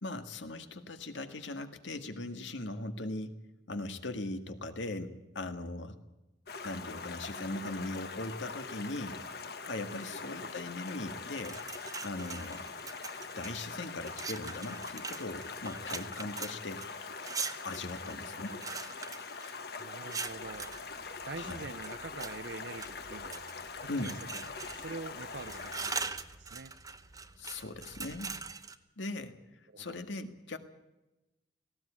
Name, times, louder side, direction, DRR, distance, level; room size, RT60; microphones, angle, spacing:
voice 1, 0.0-3.4 3.7-6.0 6.6-9.2 9.6-11.6 12.0-12.7 13.4-16.9 17.6-18.6 21.4-21.7 23.9-24.1 27.4-28.3 29.0-29.4 29.8-30.6, left 2 dB, 85° left, 8 dB, 1.8 m, -39 dB
Stream, 6.5-26.0, left 4 dB, 55° left, 1.3 m, -43 dB
sound 1, 11.3-13.6 14.0-20.8 21.5-22.3 22.8-23.6 24.0-25.0 25.3-28.8, right 5 dB, 20° right, 0.9 m, -42 dB
voice 2, 18.1-18.6 19.8-20.8 21.3-23.4 23.8-26.7 29.7-29.9, right 3 dB, 75° right, 13 dB, 0.7 m, -45 dB
sound 2, 20.2-28.5, right 1 dB, 55° right, 2.0 m, -59 dB
18.5 x 16.5 x 8.8 m, 1.0 s
head